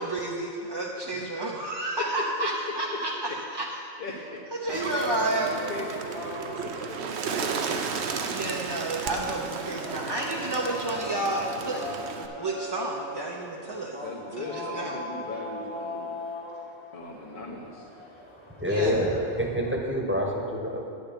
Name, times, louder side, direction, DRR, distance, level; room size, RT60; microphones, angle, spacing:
voice 1, 0.0-3.1 3.5-3.7 4.6-5.5 8.3-11.8 12.4-14.0 14.4-15.0 18.7-18.9, right 2 dB, 25° right, -2 dB, 0.6 m, -31 dB
voice 2, 2.0-2.7 3.3-3.4 4.0-4.4 4.7-7.5 8.7-9.0 13.7-16.2 16.9-17.9 18.8-19.0, left 2 dB, 50° left, -5 dB, 1.2 m, -38 dB
sound 1, 4.7-19.8, left 1 dB, 25° left, 1.2 m, -39 dB
Bird, 4.7-12.3, right 5 dB, 75° right, 1.0 m, -34 dB
voice 3, 18.6-20.8, equal, 10° right, -1 dB, 1.1 m, -27 dB
10.0 x 9.2 x 5.2 m, 2.4 s
omnidirectional pair, 1.1 m